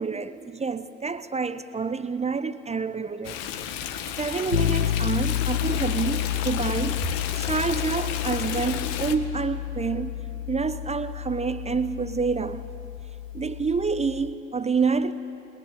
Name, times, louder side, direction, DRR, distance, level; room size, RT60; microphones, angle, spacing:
voice 1, 0.0-3.4 3.6-3.8 4.2-7.1 7.3-10.2 10.5-12.6 13.3-15.1, right 5 dB, 15° right, 0.8 m, -28 dB
Stream, 3.2-9.1, left 9 dB, 60° left, 1.6 m, -33 dB
sound 1, 4.5-14.3, left 11 dB, 90° left, 0.7 m, -30 dB
28.5 x 21.0 x 8.7 m
figure-of-eight pair, 60°, 38 cm